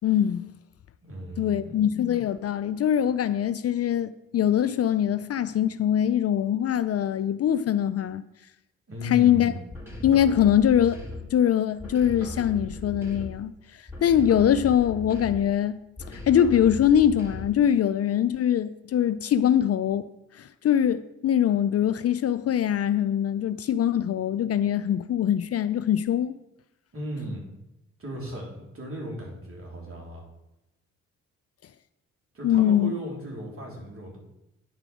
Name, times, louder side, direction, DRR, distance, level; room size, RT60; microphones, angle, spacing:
voice 1, 0.0-0.5 1.4-8.2 9.0-9.5 10.0-11.0 11.3-13.5 14.0-15.8 16.1-20.0 20.3-26.4 32.4-32.9, left 10 dB, 50° left, 0.5 m, -23 dB
voice 2, 1.0-1.7 8.9-9.6 26.9-27.4 28.0-30.2 32.3-34.2, equal, 45° right, 3.9 m, -36 dB
sound 1, 9.7-11.4 11.8-13.5 13.9-15.6 16.0-17.7, left 1 dB, 5° right, 3.5 m, -38 dB
10.0 x 4.8 x 6.2 m
hypercardioid pair, 45°, 32 cm